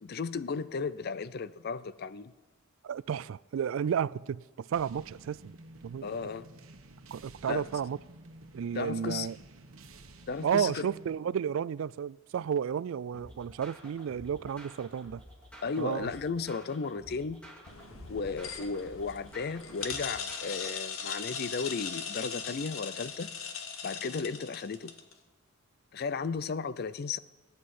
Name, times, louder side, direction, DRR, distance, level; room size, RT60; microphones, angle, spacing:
voice 1, 0.0-2.3 6.0-6.5 7.4-7.7 8.7-9.3 10.3-10.9 15.6-17.4 18.1-23.3 23.8-24.9 25.9-27.2, left 5 dB, 50° left, 0.5 m, -35 dB
voice 2, 2.8-5.6 5.8-6.3 7.1-8.0 8.5-9.4 10.4-15.2 15.8-16.1, right 8 dB, 70° right, 0.3 m, -32 dB
sound 1, 4.7-11.2, right 2 dB, 85° right, 1.2 m, -52 dB
sound 2, 13.1-20.7, equal, 5° left, 2.9 m, -51 dB
sound 3, 17.7-25.1, left 6 dB, 75° left, 1.3 m, -39 dB
20.0 x 9.6 x 4.3 m
head